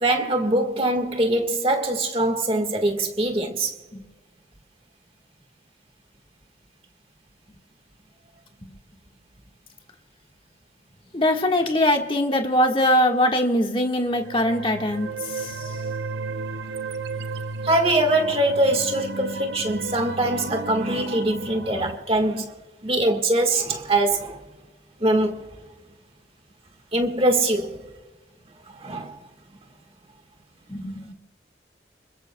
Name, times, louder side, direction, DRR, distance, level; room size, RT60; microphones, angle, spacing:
voice 1, 0.0-3.7 17.6-22.5 22.8-24.4 25.0-25.4 26.9-27.8 28.7-29.2, right 1 dB, 30° right, 1.6 m, -23 dB
voice 2, 11.1-15.7 30.7-31.1, left 1 dB, 30° left, 1.5 m, -22 dB
sound 1, 14.1-22.0, right 3 dB, 75° right, 0.7 m, -34 dB
30.0 x 21.5 x 2.3 m
head